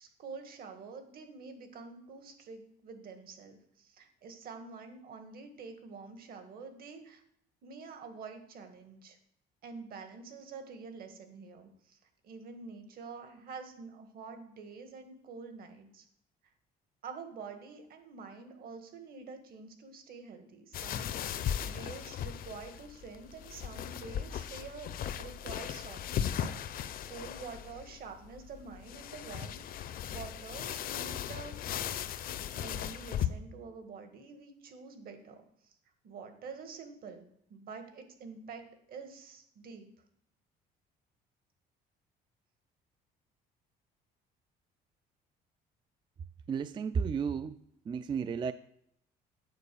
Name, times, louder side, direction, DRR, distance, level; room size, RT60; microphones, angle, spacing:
voice 1, 0.0-7.2 7.6-9.2 9.6-12.0 12.2-16.1 17.0-24.9 25.2-26.5 27.1-31.9 32.3-35.8 36.0-37.3 37.5-39.9, right 5 dB, 60° right, 6 dB, 1.7 m, -47 dB
sound 1, 20.7-33.3, left 9 dB, 60° left, 0.6 m, -37 dB
voice 2, 46.5-47.6 47.9-48.5, right 6 dB, 30° right, 13 dB, 0.3 m, -33 dB
9.2 x 4.7 x 6.9 m, 0.70 s
cardioid pair, 110°, 17 cm